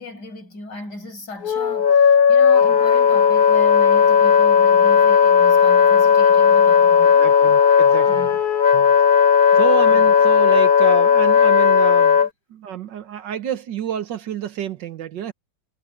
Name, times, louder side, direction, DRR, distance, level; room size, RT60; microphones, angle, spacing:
voice 1, 0.0-7.4 8.1-8.4 9.5-9.6, left 2 dB, 70° left, 7.5 m, -36 dB
Wind instrument woodwind instrument, 1.4-12.3, left 6 dB, 50° left, 0.6 m, -15 dB
voice 2, 7.2-8.3 8.7-12.2 12.5-15.3, right 10 dB, 80° right, 1.9 m, -29 dB
omnidirectional pair, 1.9 m